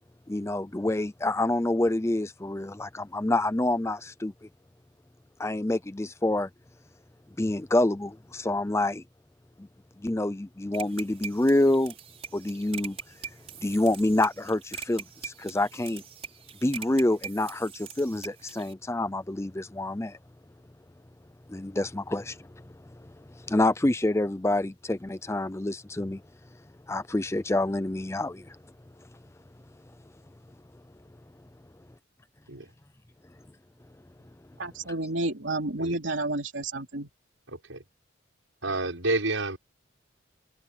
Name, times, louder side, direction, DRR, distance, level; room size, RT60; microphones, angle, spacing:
voice 1, 0.3-4.5 5.4-6.5 7.4-9.0 9.6-9.7 10.0-11.9 12.3-13.0 13.6-16.0 16.6-20.2 21.5-26.2 26.9-28.6, left 1 dB, 15° left, 0.5 m, -27 dB
sound 1, 10.7-18.7, right 7 dB, 30° right, 6.3 m, -42 dB
voice 2, 34.6-37.1, right 2 dB, 75° right, 3.4 m, -30 dB
voice 3, 38.6-39.6, right 2 dB, 90° right, 6.4 m, -28 dB
head